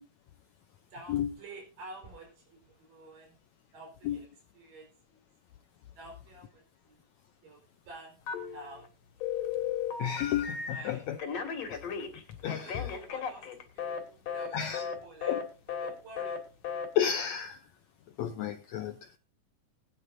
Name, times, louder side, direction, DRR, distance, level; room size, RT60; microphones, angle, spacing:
voice 1, 0.9-3.4 3.7-4.3 4.5-5.2 6.0-7.0 7.4-7.6 7.9-8.2 8.5-8.9 10.7-11.0 12.6-15.3 15.8-16.4, right 2 dB, 75° right, 0 dB, 6.2 m, -49 dB
Telephone, 8.3-8.9 9.2-10.8 11.2-14.0 14.3-14.5 14.7-15.0 15.2-15.4 15.7-15.9 16.2-16.4 16.6-16.9, left 7 dB, 55° left, 2.8 m, -35 dB
voice 2, 10.0-11.2 11.7-11.8 12.1-12.9 14.5-14.8 15.3-15.4 16.9-17.6 18.2-19.2, left 10 dB, 75° left, 8 dB, 1.6 m, -32 dB
21.0 x 9.7 x 2.6 m, 0.34 s
omnidirectional pair, 3.9 m